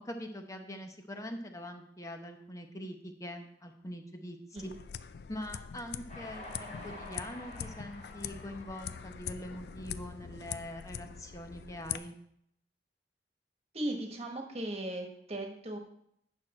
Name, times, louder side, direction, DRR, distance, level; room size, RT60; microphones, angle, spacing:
voice 1, 0.1-4.7 5.3-12.1, left 1 dB, 20° left, 5 dB, 0.8 m, -43 dB
sound 1, 4.6-12.0, left 8 dB, 65° left, 0.4 m, -43 dB
Train, 6.1-10.5, left 1 dB, 45° left, 2.2 m, -49 dB
voice 2, 13.7-15.8, right 1 dB, 35° right, 3 dB, 1.4 m, -37 dB
9.3 x 6.2 x 4.3 m, 0.70 s
head